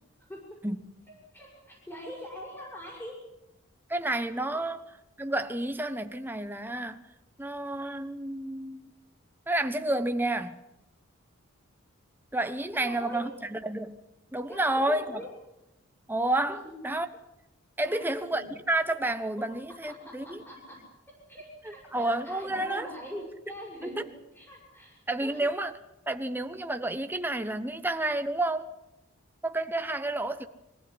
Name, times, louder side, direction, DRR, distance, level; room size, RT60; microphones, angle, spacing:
voice 1, 1.3-3.2 12.7-13.3 14.5-15.3 16.5-16.6 17.8-18.5 20.0-20.8 21.3-24.1 24.3-25.5, equal, 10° left, 6.2 m, -42 dB
voice 2, 3.9-4.8 5.2-7.0 7.4-8.9 9.5-10.6 12.3-14.0 14.3-15.2 16.1-17.1 17.8-20.4 21.6-22.9 23.8-24.0 25.1-25.7 26.1-28.7 29.4-30.5, right 1 dB, 10° right, 1.1 m, -30 dB
24.5 x 16.0 x 9.6 m
head